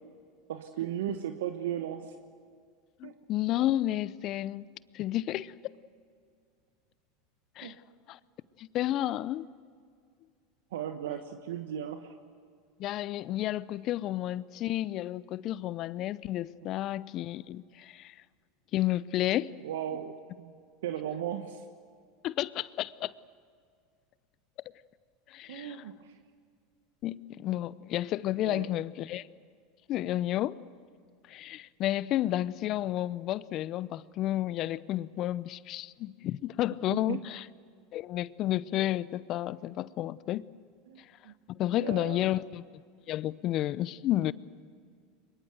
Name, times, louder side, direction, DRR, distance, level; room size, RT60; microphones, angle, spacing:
voice 1, 0.5-2.1 3.0-3.1 7.6-7.8 10.7-12.1 19.6-20.5 20.8-21.6 25.5-26.2 28.4-28.7 36.9-37.2 40.9-41.3 41.7-42.3, right 10 dB, 75° right, 1.2 m, -36 dB
voice 2, 3.0-4.7 4.9-5.5 7.6-7.7 8.1-8.2 8.6-9.5 12.8-18.1 18.7-19.5 22.2-23.1 25.3-25.8 27.0-29.3 29.9-30.6 31.3-37.5 37.9-40.5 41.5-42.6 43.1-44.3, left 14 dB, 50° left, 0.7 m, -31 dB
23.5 x 22.0 x 7.9 m
hypercardioid pair, 90°, 0 cm